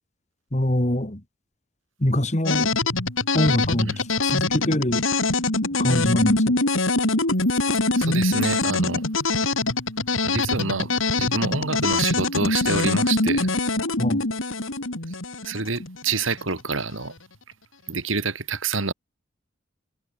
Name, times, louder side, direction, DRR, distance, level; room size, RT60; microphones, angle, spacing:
voice 1, 0.5-1.2 2.0-2.7 3.3-5.0 5.8-6.6 14.0-14.2, left 1 dB, 35° left, 2.0 m, -24 dB
sound 1, 2.5-16.4, left 2 dB, 85° left, 4.0 m, -24 dB
voice 2, 8.0-9.0 10.2-13.5 15.1-15.2 15.4-17.1 17.9-18.9, right 4 dB, 80° right, 2.5 m, -27 dB
head